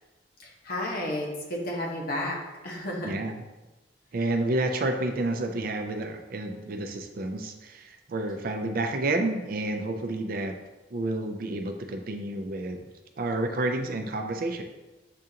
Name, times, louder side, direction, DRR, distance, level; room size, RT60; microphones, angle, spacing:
voice 1, 0.4-3.1, left 1 dB, 55° left, -2 dB, 1.0 m, -32 dB
voice 2, 3.0-3.4 4.1-10.6 10.9-12.9 13.2-14.6, right 2 dB, 55° right, 5 dB, 0.4 m, -30 dB
7.4 x 2.5 x 2.8 m, 1.1 s
head